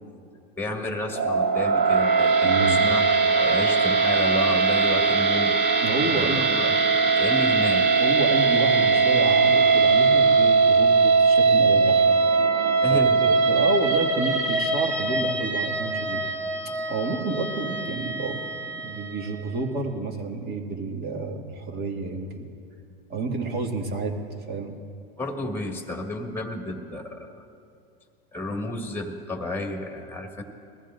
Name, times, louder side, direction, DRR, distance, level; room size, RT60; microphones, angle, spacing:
voice 1, 0.6-5.9 6.1-6.8 7.2-7.9 11.7-12.0 12.8-13.5 16.6-16.8 25.2-27.4 28.3-30.4, left 2 dB, 5° left, 3 dB, 1.8 m, -32 dB
sound 1, 1.1-19.4, right 4 dB, 65° right, 2.0 m, -21 dB
voice 2, 2.4-2.9 5.8-6.5 8.0-12.1 12.9-13.0 13.5-16.2 16.9-22.5 23.1-24.2 24.5-24.7, right 3 dB, 35° right, 2 dB, 2.0 m, -30 dB
21.5 x 14.5 x 2.5 m, 2.4 s
hypercardioid pair, 100°, 29 cm